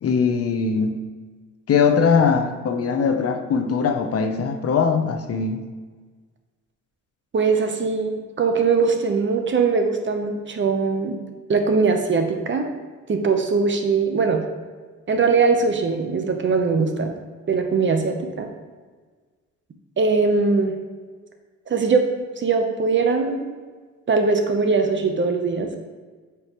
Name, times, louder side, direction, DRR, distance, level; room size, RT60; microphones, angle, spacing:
voice 1, 0.0-1.0 1.7-5.6, left 5 dB, 50° left, 6 dB, 0.8 m, -21 dB
voice 2, 7.3-11.2 11.5-12.7 13.1-14.4 15.1-17.1 17.5-18.5 20.0-20.8 21.7-22.1 22.4-23.5 24.1-25.8, right 4 dB, 40° right, 5 dB, 0.9 m, -21 dB
8.3 x 4.8 x 3.1 m, 1.4 s
cardioid pair, 90°, 30 cm